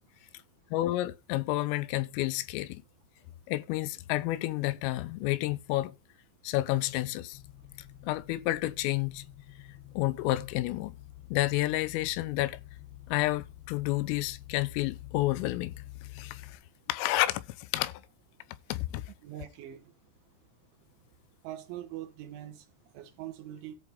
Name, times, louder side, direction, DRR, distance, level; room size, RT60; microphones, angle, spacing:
voice 1, 0.7-2.8 3.5-5.9 6.4-7.4 8.0-9.2 10.0-10.9 11.3-12.6 13.1-15.8 16.1-16.6 16.9-18.0 18.7-19.0, left 17 dB, 85° left, 3.3 m, -30 dB
sound 1, 7.3-16.6, left 15 dB, 70° left, 2.5 m, -48 dB
voice 2, 19.2-19.8 21.4-22.7 23.0-23.8, right 12 dB, 70° right, 3.4 m, -42 dB
13.5 x 4.9 x 5.1 m
omnidirectional pair, 5.9 m